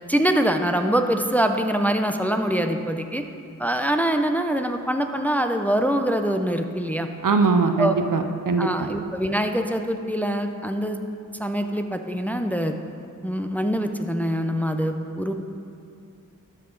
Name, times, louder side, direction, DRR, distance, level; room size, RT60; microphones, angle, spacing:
voice 1, 0.1-3.2 3.6-7.1 7.8-8.0 8.6-11.0 11.4-12.8 13.2-15.3, right 1 dB, 5° left, 6 dB, 0.5 m, -24 dB
voice 2, 7.2-8.9, right 4 dB, 70° right, 7 dB, 0.6 m, -21 dB
12.5 x 5.5 x 3.9 m, 2.5 s
wide cardioid pair, 55°, 34 cm